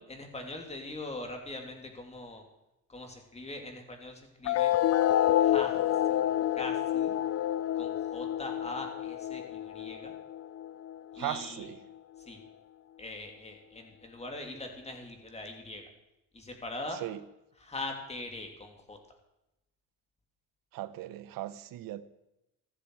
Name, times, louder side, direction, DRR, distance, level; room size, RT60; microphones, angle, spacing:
voice 1, 0.0-2.4 2.9-4.7 5.4-5.7 6.6-7.2 7.7-10.1 11.1-11.7 12.2-12.4 13.0-15.8 16.3-17.0 17.5-19.0, left 2 dB, 20° left, 3.0 m, -41 dB
sound 1, 4.4-11.4, left 12 dB, 45° left, 0.5 m, -28 dB
voice 2, 20.7-22.0, right 14 dB, 70° right, 1.1 m, -37 dB
15.5 x 14.5 x 4.8 m
cardioid pair, 130°, 34 cm